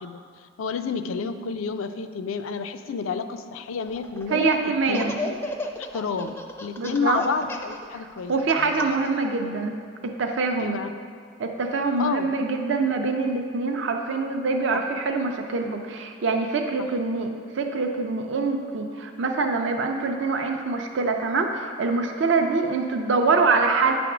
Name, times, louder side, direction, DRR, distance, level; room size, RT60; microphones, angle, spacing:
voice 1, 0.0-5.3 5.9-8.9 10.6-10.9 12.0-12.3 14.7-14.8, left 5 dB, 80° left, 9 dB, 0.4 m, -30 dB
Laughter, 3.9-4.4 4.8-9.1, left 2 dB, 10° left, 0.4 m, -34 dB
voice 2, 4.3-5.2 6.8-7.2 8.3-9.8 10.2-10.8 11.4-23.9, right 4 dB, 60° right, 3 dB, 0.4 m, -24 dB
9.2 x 3.5 x 5.9 m, 2.2 s
head